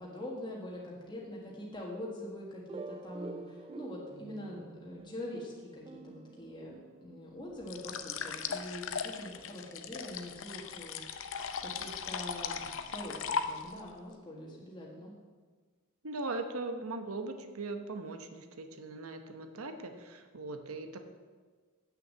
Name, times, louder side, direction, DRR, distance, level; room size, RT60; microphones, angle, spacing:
voice 1, 0.0-15.1, left 1 dB, 20° left, -4 dB, 1.5 m, -44 dB
sound 1, 2.7-7.3, right 3 dB, 25° right, 0.3 m, -47 dB
sound 2, 7.7-13.9, left 6 dB, 65° left, 0.7 m, -38 dB
voice 2, 16.0-21.0, right 3 dB, 90° right, 7 dB, 0.9 m, -39 dB
8.3 x 6.4 x 7.6 m, 1.5 s
head